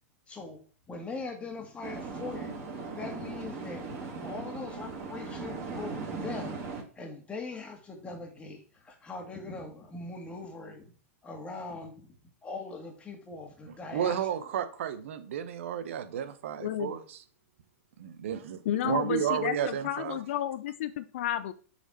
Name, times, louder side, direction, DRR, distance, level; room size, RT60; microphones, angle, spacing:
voice 1, 0.3-0.6 0.9-2.6 3.0-3.9 4.1-6.6 6.9-10.9 11.2-12.1 12.4-14.5 18.8-19.1, left 3 dB, 15° left, 1.9 m, -41 dB
sound 1, 1.8-6.8, right 4 dB, 40° right, 2.6 m, -38 dB
voice 2, 13.9-17.2 18.0-20.2, right 9 dB, 60° right, 0.9 m, -32 dB
voice 3, 16.6-17.0 18.7-21.5, left 11 dB, 55° left, 0.5 m, -32 dB
6.9 x 4.3 x 4.3 m
figure-of-eight pair, 100°, 8 cm